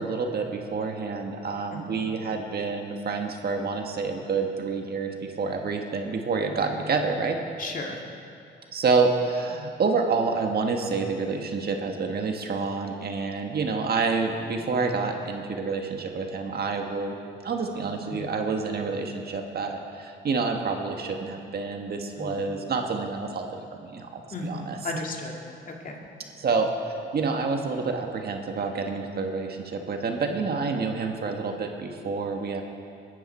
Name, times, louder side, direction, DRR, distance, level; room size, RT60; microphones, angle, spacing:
voice 1, 0.0-7.4 8.7-17.2 17.4-24.8 26.4-26.7 27.1-32.6, right 4 dB, 50° right, 3 dB, 1.6 m, -28 dB
voice 2, 1.7-2.2 7.6-8.0 18.1-18.3 22.2-22.5 24.3-25.3 25.7-26.0, left 2 dB, 45° left, 0 dB, 2.2 m, -35 dB
20.5 x 12.0 x 4.5 m, 2.4 s
cardioid pair, 90°, 20 cm